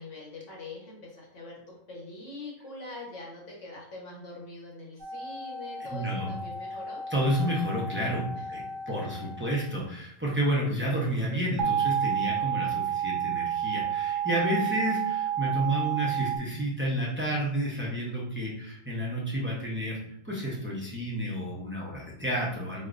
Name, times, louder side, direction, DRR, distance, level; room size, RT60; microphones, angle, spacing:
voice 1, 0.0-7.0 8.3-8.5, left 2 dB, 80° left, -4 dB, 1.5 m, -43 dB
sound 1, 5.0-9.8 11.6-16.4, right 8 dB, 75° right, 1.0 m, -31 dB
voice 2, 5.9-6.3 7.1-20.0 20.2-22.9, equal, 15° right, -5 dB, 0.5 m, -30 dB
4.8 x 2.0 x 2.5 m, 0.70 s
omnidirectional pair, 1.2 m